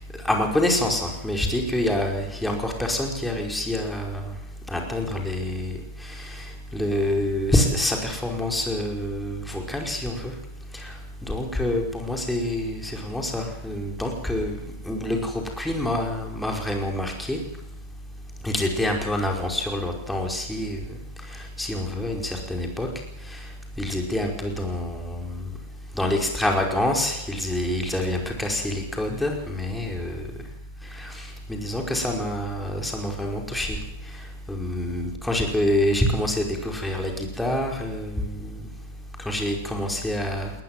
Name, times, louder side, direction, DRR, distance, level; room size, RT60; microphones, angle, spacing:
voice 1, 0.3-4.2 4.7-5.7 6.2-6.4 6.7-10.3 10.8-10.9 11.2-14.6 14.8-17.4 18.4-20.8 21.6-22.9 23.8-25.4 26.0-30.2 31.0-31.2 31.5-33.8 34.5-38.5 39.2-40.5, left 1 dB, 5° left, 1 dB, 5.1 m, -26 dB
20.5 x 19.5 x 7.6 m, 0.88 s
figure-of-eight pair, 95°, 0 cm